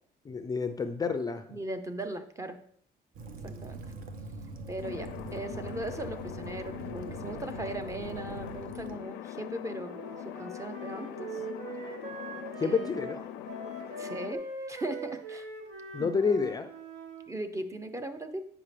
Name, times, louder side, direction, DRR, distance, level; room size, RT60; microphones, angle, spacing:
voice 1, 0.2-1.4 12.6-13.2 15.9-16.7, left 5 dB, 25° left, 8 dB, 0.4 m, -29 dB
voice 2, 1.5-2.6 3.4-3.8 4.7-10.0 10.2-11.4 12.6-12.9 14.0-15.5 16.0-16.3 17.3-18.4, right 1 dB, 20° right, 8 dB, 0.7 m, -38 dB
Waves surf / Splash splatter / Trickle dribble, 3.1-9.0, right 3 dB, 55° right, 0.9 m, -43 dB
sound 1, 4.8-14.4, left 11 dB, 90° left, 0.5 m, -42 dB
Wind instrument woodwind instrument, 9.8-17.3, right 3 dB, 70° right, 1.3 m, -42 dB
8.7 x 5.1 x 3.3 m, 0.63 s
cardioid pair, 110°, 17 cm